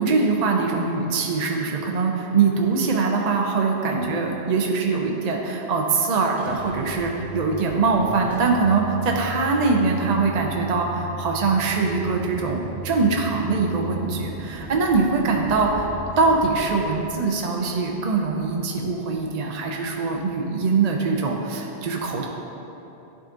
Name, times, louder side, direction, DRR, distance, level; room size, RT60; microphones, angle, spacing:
voice 1, 0.0-15.9 16.2-22.3, right 4 dB, 45° right, 0 dB, 0.6 m, -23 dB
sound 1, 6.4-17.7, equal, ahead, 0.8 m, -37 dB
11.0 x 3.8 x 3.8 m, 3.0 s
omnidirectional pair, 1.1 m